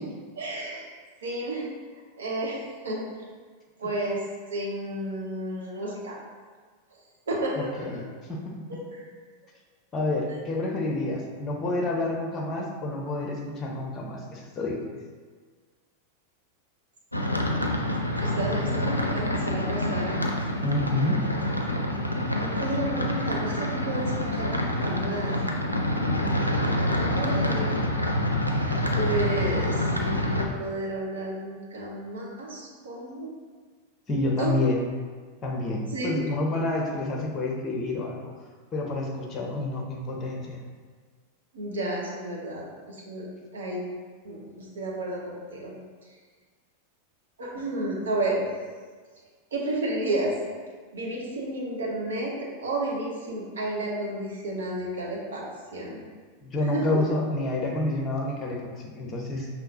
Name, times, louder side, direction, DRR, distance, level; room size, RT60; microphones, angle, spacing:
voice 1, 0.3-0.8 1.2-1.7 2.2-2.6 2.8-3.1 3.8-4.2 4.5-6.2 7.3-7.9 8.7-9.1 18.2-20.2 22.3-25.3 26.9-27.9 28.9-33.3 34.4-34.5 35.9-36.1 41.5-43.8 44.2-45.7 47.4-48.5 49.5-50.3 50.9-52.3 52.6-55.4 55.7-56.0 56.6-56.8, right 1 dB, 65° right, -3 dB, 1.0 m, -31 dB
voice 2, 7.5-8.0 8.3-8.6 9.9-14.8 20.5-21.2 34.1-34.8 35.4-38.2 38.7-40.6 56.4-59.5, left 2 dB, 25° left, 0 dB, 0.8 m, -28 dB
sound 1, 17.1-30.5, left 1 dB, 85° left, 0.4 m, -27 dB
5.6 x 2.9 x 2.7 m, 1.5 s
figure-of-eight pair, 90°, 0 cm